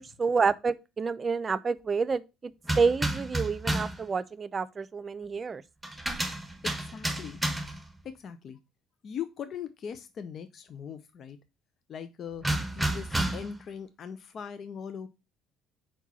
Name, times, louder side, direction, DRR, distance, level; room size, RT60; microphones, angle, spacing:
voice 1, 0.0-2.5 2.8-5.6, right 5 dB, 35° right, 0.5 m, -28 dB
sound 1, 2.6-4.0 5.8-7.9 12.4-13.6, right 1 dB, 5° right, 1.2 m, -31 dB
voice 2, 6.6-7.4 8.0-8.6 9.0-11.4 11.9-12.4 12.7-15.1, left 7 dB, 50° left, 0.6 m, -40 dB
4.6 x 4.5 x 5.5 m
figure-of-eight pair, 55°, 0 cm